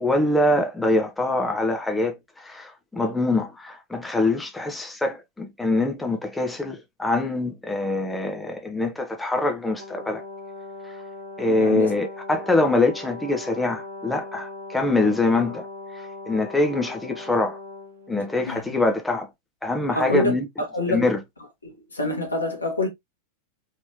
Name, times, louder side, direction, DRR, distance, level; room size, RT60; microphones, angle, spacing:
voice 1, 0.0-10.2 11.4-15.7 16.3-17.6 18.1-19.3 19.6-20.5 20.9-21.2, left 2 dB, 5° left, 0.7 m, -24 dB
Brass instrument, 9.8-18.5, left 3 dB, 70° right, 1.0 m, -39 dB
voice 2, 11.5-11.9 18.5-18.6 19.9-21.1 21.6-22.9, left 2 dB, 80° left, 1.3 m, -26 dB
3.4 x 3.0 x 2.7 m
figure-of-eight pair, 90°, 0 cm